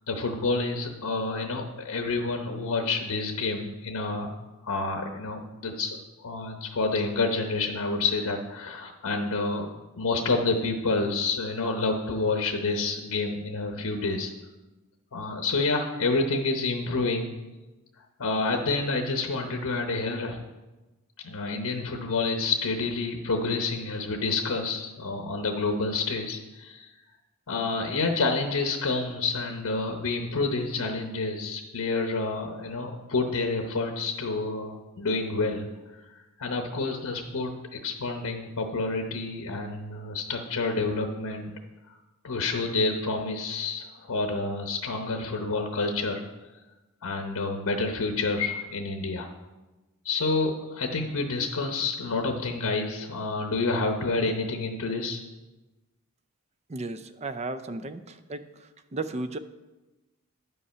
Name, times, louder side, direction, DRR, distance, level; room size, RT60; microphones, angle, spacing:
voice 1, 0.1-4.3 4.6-9.7 9.9-14.3 15.1-17.3 18.2-20.4 21.2-26.9 27.5-35.7 36.4-41.5 42.2-46.2 47.0-49.3 50.0-55.2, left 3 dB, 85° left, 4 dB, 0.9 m, -28 dB
voice 2, 56.7-58.4 58.9-59.4, right 3 dB, 30° right, 11 dB, 0.4 m, -34 dB
9.6 x 5.5 x 5.6 m, 1.1 s
head